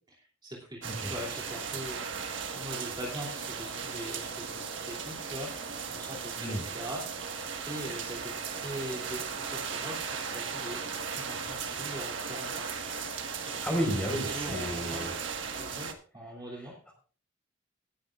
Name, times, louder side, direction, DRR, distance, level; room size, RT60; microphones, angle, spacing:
voice 1, 0.1-2.0 2.5-10.8 11.1-12.8 13.5-13.6 14.3-15.0 15.5-15.9 16.1-16.7, equal, 25° right, -3 dB, 2.9 m, -42 dB
sound 1, 0.8-15.9, right 6 dB, 70° right, 1.6 m, -37 dB
voice 2, 13.6-15.2 16.5-16.9, equal, 5° left, 1 dB, 4.7 m, -33 dB
18.5 x 10.0 x 2.5 m, 0.39 s
head